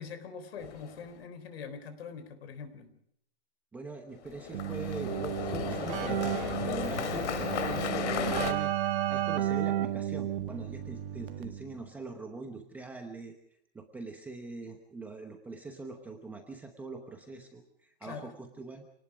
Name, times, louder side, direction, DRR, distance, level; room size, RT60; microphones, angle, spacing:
voice 1, 0.0-3.0 18.0-18.3, left 6 dB, 55° left, 11 dB, 3.9 m, -43 dB
sound 1, 0.6-1.1 4.2-8.5, left 8 dB, 70° left, 2.5 m, -34 dB
voice 2, 3.7-13.4 13.7-18.9, right 3 dB, 5° right, 3 dB, 0.9 m, -43 dB
Keyboard (musical), 4.5-11.8, right 12 dB, 45° right, 1.6 m, -33 dB
27.5 x 19.0 x 5.0 m, 0.72 s
supercardioid pair, 175°, 36 cm